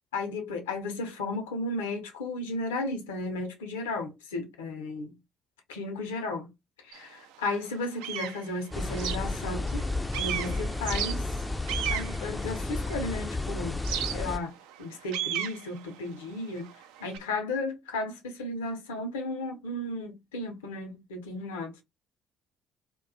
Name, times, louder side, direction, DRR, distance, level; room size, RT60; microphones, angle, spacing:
voice 1, 0.1-5.2 5.7-6.5 6.8-9.8 10.2-11.3 11.9-13.8 14.1-14.5 14.8-16.7 17.0-21.7, left 2 dB, 75° left, 0.6 m, -34 dB
sound 1, 6.9-7.0 7.6-9.9 10.1-13.2 13.8-17.2, right 11 dB, 70° right, 0.3 m, -35 dB
sound 2, 8.7-14.4, left 2 dB, 10° left, 0.3 m, -32 dB
2.2 x 2.1 x 2.6 m
figure-of-eight pair, 50°, 0 cm